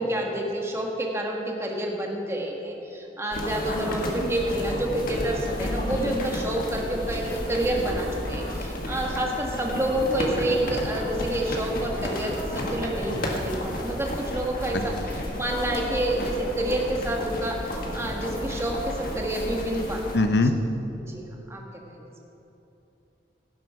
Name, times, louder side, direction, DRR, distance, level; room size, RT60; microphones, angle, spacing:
voice 1, 0.0-20.2 21.1-21.6 21.9-22.1, right 1 dB, 15° right, -1 dB, 1.5 m, -29 dB
sound 1, 3.3-20.2, left 1 dB, 55° left, 1.6 m, -31 dB
voice 2, 14.7-15.1 20.1-20.5, left 2 dB, 70° left, 8 dB, 0.7 m, -22 dB
16.0 x 7.4 x 5.8 m, 2.9 s
head